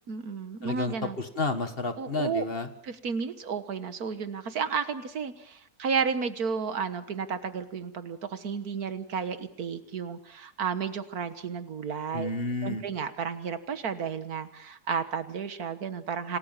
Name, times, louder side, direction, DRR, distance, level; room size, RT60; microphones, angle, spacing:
voice 1, 0.1-1.2 2.0-2.4 2.8-12.3 12.6-16.4, right 6 dB, 70° right, 11 dB, 1.8 m, -32 dB
voice 2, 0.6-2.7 12.1-12.8, left 3 dB, 40° left, 9 dB, 1.8 m, -31 dB
27.5 x 19.0 x 7.3 m, 0.73 s
omnidirectional pair, 1.6 m